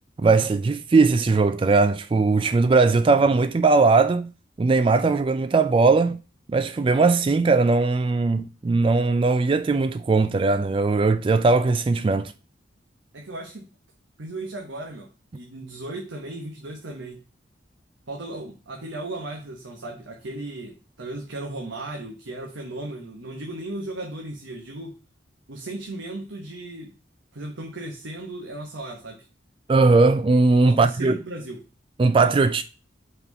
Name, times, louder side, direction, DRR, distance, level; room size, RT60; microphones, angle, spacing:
voice 1, 0.2-4.3 4.6-6.2 6.5-12.3 29.7-31.2 32.0-32.6, right 3 dB, 30° right, 0.3 m, -19 dB
voice 2, 13.1-13.7 14.2-17.2 18.1-24.9 25.5-26.9 27.3-29.2 30.6-31.6, right 2 dB, 90° right, 1.2 m, -36 dB
5.6 x 4.3 x 5.3 m
head